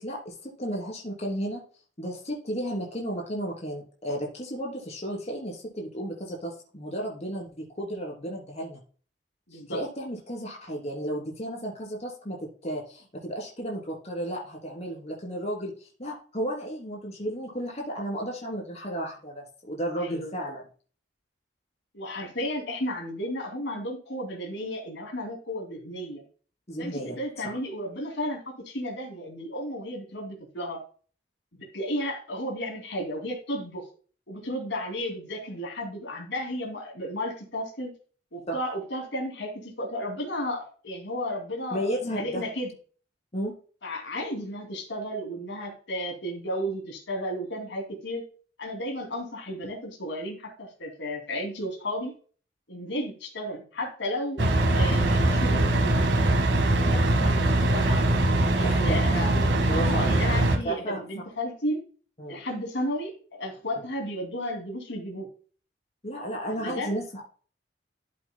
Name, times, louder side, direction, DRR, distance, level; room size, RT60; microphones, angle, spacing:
voice 1, 0.0-1.6 2.0-8.8 9.7-20.6 26.7-27.2 38.5-38.6 41.7-42.4 43.3-43.5 54.4-54.5 57.2-57.3 58.6-59.4 59.7-60.2 60.6-61.0 62.2-62.4 66.0-67.2, right 1 dB, 40° left, 0 dB, 3.1 m, -33 dB
voice 2, 9.5-9.8 20.0-20.3 21.9-26.2 26.8-30.8 31.6-33.9 34.3-37.9 38.3-42.7 43.8-48.2 48.6-52.1 52.7-54.4 54.7-56.1 56.7-58.1 58.6-59.3 59.7-61.8 62.3-65.3 66.5-66.9, equal, 80° left, 2 dB, 2.7 m, -33 dB
sound 1, 54.4-60.6, right 1 dB, 90° right, 1.6 m, -22 dB
12.5 x 7.6 x 2.2 m, 0.40 s
head